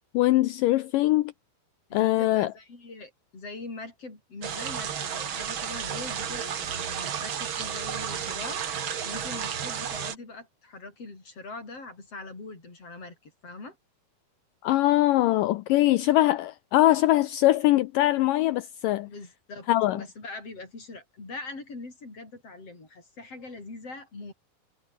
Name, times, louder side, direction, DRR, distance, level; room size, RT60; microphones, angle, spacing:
voice 1, 0.1-1.3 1.9-2.5 14.6-19.1 19.7-20.0, left 16 dB, 80° left, 2.0 m, -22 dB
voice 2, 1.9-8.6 9.0-13.8 19.1-24.3, left 3 dB, 35° left, 7.5 m, -42 dB
sound 1, 4.4-10.2, right 8 dB, 50° right, 1.6 m, -32 dB
omnidirectional pair, 4.5 m